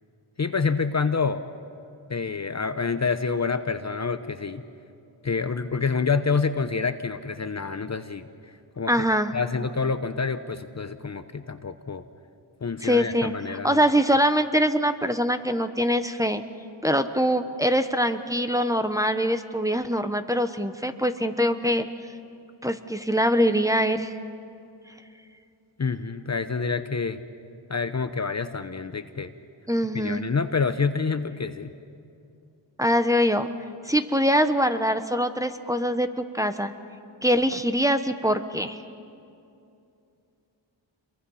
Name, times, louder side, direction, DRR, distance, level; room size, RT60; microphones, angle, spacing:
voice 1, 0.4-1.4 2.1-4.6 5.2-8.3 8.8-12.0 12.6-13.8 25.8-27.2 27.7-29.3 29.9-31.7, left 5 dB, 35° left, 10 dB, 0.9 m, -27 dB
voice 2, 8.9-9.3 12.8-16.4 16.8-21.9 22.6-24.2 29.7-30.2 32.8-33.5 33.8-36.7 37.2-38.8, equal, 5° right, 9 dB, 1.1 m, -23 dB
27.0 x 23.0 x 5.7 m, 2.6 s
cardioid pair, 70°, 49 cm